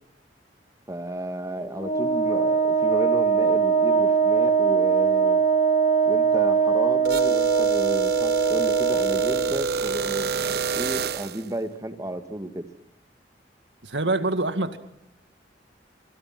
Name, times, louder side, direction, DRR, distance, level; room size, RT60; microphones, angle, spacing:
voice 1, 0.9-5.4 6.1-12.7, right 1 dB, 20° right, 7 dB, 1.9 m, -33 dB
Wind instrument woodwind instrument, 1.8-9.6, right 6 dB, 40° left, 2.2 m, -21 dB
sound 1, 7.0-11.5, right 4 dB, 65° right, 1.0 m, -27 dB
voice 2, 13.8-14.8, right 2 dB, 85° right, 9 dB, 2.1 m, -25 dB
27.5 x 27.0 x 6.0 m, 0.76 s
head